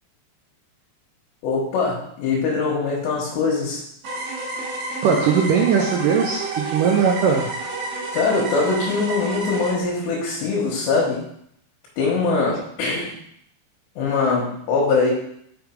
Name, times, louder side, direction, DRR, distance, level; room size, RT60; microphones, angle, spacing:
voice 1, 1.4-3.8 8.1-11.2 12.0-13.1 14.0-15.1, left 4 dB, 80° left, -4 dB, 3.6 m, -22 dB
sound 1, 4.0-9.7, right 2 dB, 60° right, 2.5 m, -30 dB
voice 2, 5.0-7.5, right 6 dB, 85° right, -1 dB, 1.8 m, -19 dB
6.3 x 5.3 x 4.7 m, 0.70 s
omnidirectional pair, 4.9 m